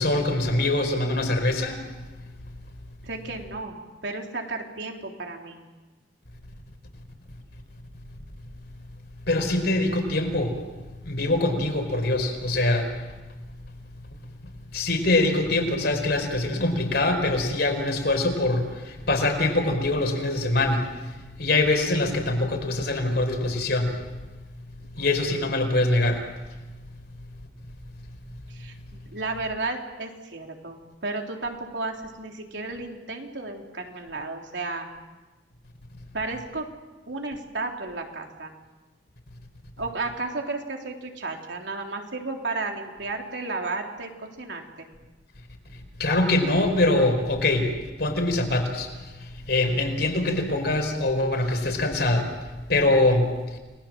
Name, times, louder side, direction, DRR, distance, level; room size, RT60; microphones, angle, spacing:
voice 1, 0.0-1.8 9.3-10.6 11.0-13.1 14.7-24.0 25.0-26.3 46.0-53.6, left 2 dB, 65° left, 4 dB, 4.9 m, -24 dB
voice 2, 3.0-5.6 24.9-25.1 28.5-34.9 36.1-36.7 37.1-38.5 39.8-44.9, right 3 dB, 75° right, 2 dB, 3.6 m, -33 dB
30.0 x 21.0 x 7.6 m, 1.2 s
head